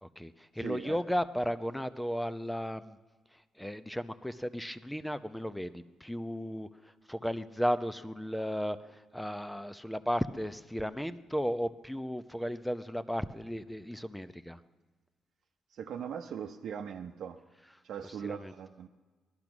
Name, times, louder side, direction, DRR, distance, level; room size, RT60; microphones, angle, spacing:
voice 1, 0.0-3.0 3.3-14.6 18.0-18.5, equal, 5° left, 13 dB, 0.7 m, -35 dB
voice 2, 0.6-1.0 15.7-17.4 17.8-18.9, right 8 dB, 70° right, 3 dB, 0.8 m, -40 dB
18.5 x 12.0 x 6.1 m, 1.4 s
cardioid pair, 90°, 0 cm